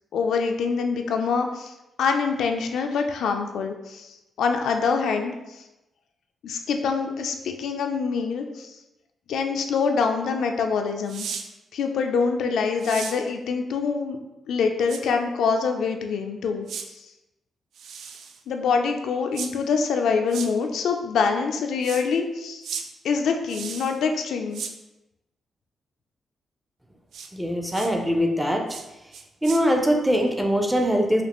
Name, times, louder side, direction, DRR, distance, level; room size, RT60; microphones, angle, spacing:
voice 1, 0.1-1.7 2.0-5.6 6.4-8.7 9.3-11.3 11.7-14.2 14.5-16.9 18.5-22.7 23.0-24.6, left 5 dB, 80° left, 4 dB, 0.4 m, -25 dB
sound 1, 11.1-11.4 12.8-13.2 14.9-15.0 16.7-16.9 17.7-18.4 19.3-19.5 20.3-20.5 21.8-22.0 22.6-22.8 23.5-24.0 24.5-24.7 27.1-27.3 27.7-27.9 28.7-28.9 29.1-29.6, right 6 dB, 75° right, 0.3 m, -35 dB
voice 2, 27.3-28.7 29.4-31.2, equal, 5° right, 2 dB, 0.4 m, -22 dB
5.0 x 2.4 x 2.9 m, 0.98 s
wide cardioid pair, 170°, 0 cm